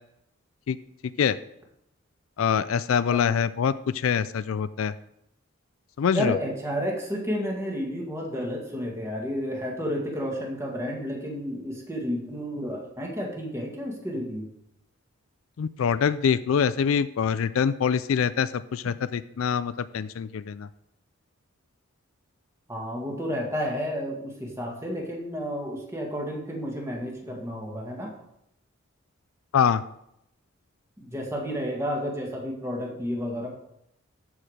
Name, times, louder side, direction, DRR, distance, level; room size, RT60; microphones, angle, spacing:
voice 1, 2.4-4.9 6.0-6.4 15.6-20.7 29.5-29.8, left 7 dB, 70° left, 15 dB, 0.4 m, -24 dB
voice 2, 6.1-14.5 22.7-28.1 31.0-33.5, equal, 15° right, -1 dB, 1.8 m, -31 dB
13.5 x 4.8 x 4.9 m, 0.79 s
head